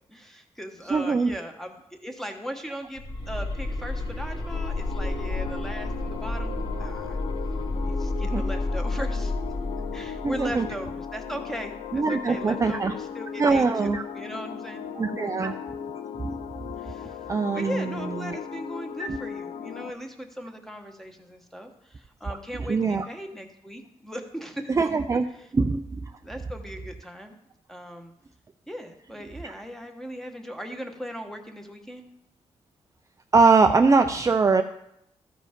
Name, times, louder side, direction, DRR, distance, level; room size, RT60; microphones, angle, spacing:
voice 1, 0.1-7.2 7.8-9.3 9.9-14.8 15.2-15.3 16.8-17.2 17.5-24.7 26.2-27.4 27.7-28.1 28.7-32.0, equal, 5° left, 4 dB, 1.1 m, -38 dB
voice 2, 0.9-1.3 8.3-8.4 10.2-10.7 11.9-12.9 13.4-14.0 15.0-15.5 16.2-16.3 17.3-18.4 19.0-19.2 22.5-23.1 24.7-25.3 25.5-26.1 29.4-29.5 33.3-34.6, right 4 dB, 25° right, 6 dB, 0.4 m, -22 dB
sound 1, 3.0-11.9, left 2 dB, 50° left, 1.9 m, -31 dB
sound 2, 4.5-19.9, left 7 dB, 85° left, 0.4 m, -37 dB
13.5 x 5.0 x 5.1 m, 0.78 s
cardioid pair, 110°, 12 cm